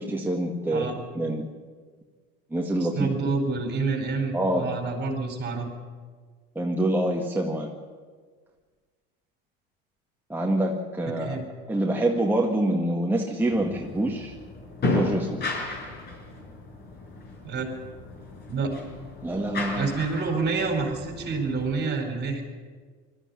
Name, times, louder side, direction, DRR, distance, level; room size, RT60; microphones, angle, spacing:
voice 1, 0.0-1.5 2.5-3.1 4.3-4.7 6.6-7.7 10.3-11.4 11.7-14.3 14.9-15.5 19.2-19.9, right 1 dB, 5° right, -1 dB, 1.9 m, -26 dB
voice 2, 2.8-5.7 11.2-11.4 17.4-17.7 18.5-18.7 19.7-22.4, right 4 dB, 35° right, 5 dB, 4.6 m, -28 dB
sound 1, 13.5-21.8, left 3 dB, 35° left, 5.6 m, -34 dB
20.0 x 14.0 x 9.9 m, 1.5 s
supercardioid pair, 110°, 30 cm